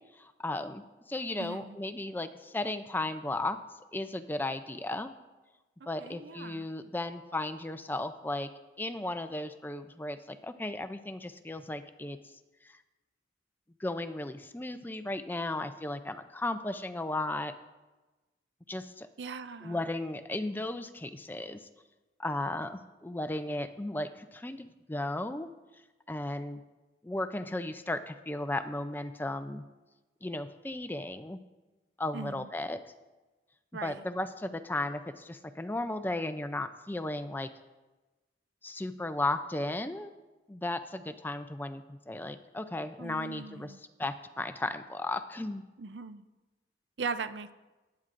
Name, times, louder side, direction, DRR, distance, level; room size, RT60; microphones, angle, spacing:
voice 1, 0.1-3.6 3.9-5.1 5.9-8.5 8.8-12.2 12.6-12.8 13.8-17.5 18.7-19.1 19.6-21.7 22.2-25.5 26.1-26.6 27.0-29.6 30.2-31.4 32.0-32.8 33.8-37.5 38.6-40.1 40.5-45.6, left 2 dB, 10° left, 9 dB, 0.4 m, -35 dB
voice 2, 1.4-1.8 6.0-6.7 19.2-19.8 32.1-32.5 33.7-34.0 43.0-43.8 45.8-46.2 47.0-47.5, right 5 dB, 75° right, 12 dB, 0.5 m, -39 dB
19.5 x 9.5 x 2.6 m, 1.1 s
head